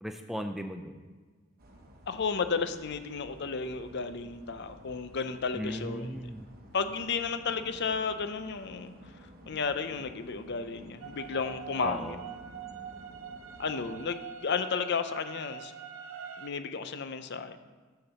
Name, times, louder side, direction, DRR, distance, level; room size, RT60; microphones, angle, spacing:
voice 1, 0.0-1.0 5.5-6.4 11.8-12.2, equal, ahead, 6 dB, 0.3 m, -37 dB
sound 1, 1.6-14.0, equal, 45° right, 1.1 m, -53 dB
voice 2, 2.1-6.2 6.7-8.9 9.5-12.2 13.6-15.7 16.4-17.6, left 5 dB, 55° left, 10 dB, 0.5 m, -33 dB
sound 2, 11.0-16.5, right 8 dB, 70° right, 0.6 m, -44 dB
7.0 x 5.9 x 6.6 m, 1.4 s
head